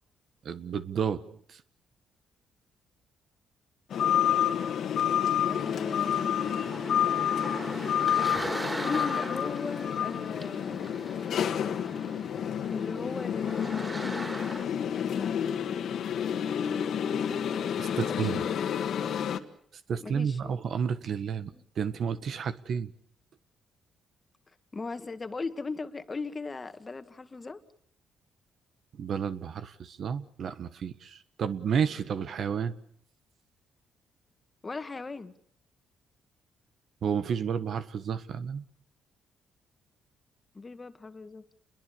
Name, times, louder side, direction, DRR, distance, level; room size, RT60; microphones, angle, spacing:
voice 1, 0.4-1.2 1.5-1.6 17.8-18.4 19.9-22.9 29.0-32.8 37.0-38.6, right 7 dB, 60° right, 1.4 m, -31 dB
sound 1, 3.9-19.4, left 9 dB, 65° left, 1.9 m, -29 dB
voice 2, 5.4-7.1 8.8-11.1 12.7-14.4 14.9-16.1 17.9-18.6 20.0-20.6 21.5-21.6 24.7-27.6 34.6-35.3 40.5-41.4, left 4 dB, 25° left, 1.8 m, -39 dB
sound 2, 5.5-14.6, right 1 dB, 15° right, 5.2 m, -40 dB
28.5 x 22.0 x 7.0 m
cardioid pair, 90°, 0 cm